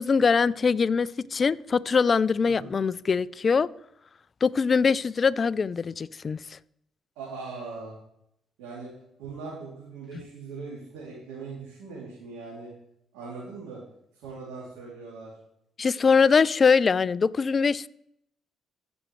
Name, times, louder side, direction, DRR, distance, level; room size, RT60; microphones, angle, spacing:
voice 1, 0.0-3.7 4.4-6.6 15.8-17.9, left 5 dB, 45° left, 0.3 m, -22 dB
voice 2, 7.1-8.0 8.6-8.9 9.2-12.7 13.1-13.8 14.1-15.3, right 4 dB, 85° right, 2.9 m, -40 dB
15.5 x 6.2 x 3.2 m
hypercardioid pair, 50°, 0 cm